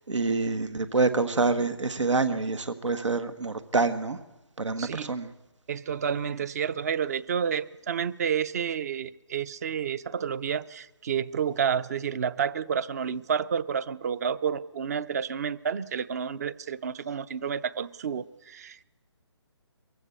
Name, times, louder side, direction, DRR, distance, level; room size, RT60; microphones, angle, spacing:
voice 1, 0.1-4.2 4.6-5.3, right 3 dB, 90° right, 12 dB, 1.6 m, -26 dB
voice 2, 4.8-5.1 5.7-18.8, right 7 dB, 35° right, 20 dB, 0.6 m, -30 dB
23.5 x 15.0 x 8.1 m, 1.1 s
hypercardioid pair, 155°, 15 cm